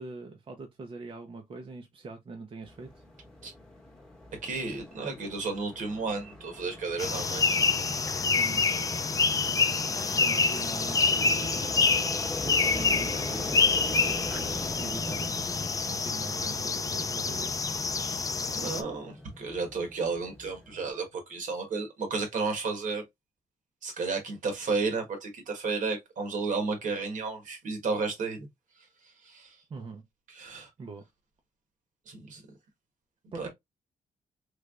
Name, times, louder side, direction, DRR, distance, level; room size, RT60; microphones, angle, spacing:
voice 1, 0.0-3.0 8.3-8.7 10.2-12.0 12.4-15.3 15.8-17.6 29.7-30.0 30.8-31.0 33.3-33.5, right 3 dB, 40° right, 0.7 m, -42 dB
sound 1, 2.6-20.9, left 1 dB, 5° left, 1.1 m, -42 dB
voice 2, 4.4-7.6 18.0-23.0 23.8-28.5 29.2-29.5 30.3-30.7 32.1-32.4 33.4-33.5, right 4 dB, 65° right, 1.4 m, -33 dB
sound 2, 7.0-18.8, left 4 dB, 25° left, 0.4 m, -27 dB
3.3 x 3.1 x 2.4 m
cardioid pair, 110°, 14 cm